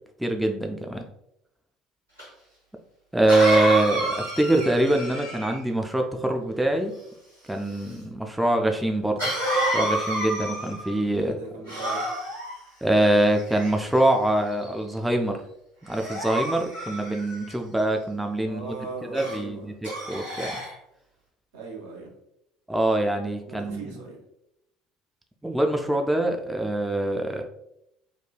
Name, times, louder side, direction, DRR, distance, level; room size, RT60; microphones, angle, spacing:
voice 1, 0.2-1.0 3.1-6.9 7.5-9.2 9.7-11.3 12.8-15.4 15.8-18.8 19.1-19.7 20.1-20.5 22.7-23.8 25.4-27.4, right 1 dB, 5° right, 3 dB, 0.3 m, -24 dB
Cough, 2.2-2.3 3.3-5.7 9.2-11.0 11.7-12.5 13.3-14.0 14.6-14.9 15.9-17.5 19.1-19.4 19.8-20.7, right 1 dB, 85° right, 1.1 m, -29 dB
voice 2, 11.1-12.1 18.4-19.7 21.5-22.1 23.4-24.2, right 4 dB, 70° right, -2 dB, 0.7 m, -39 dB
3.1 x 2.2 x 2.2 m, 0.81 s
figure-of-eight pair, 60°, 0 cm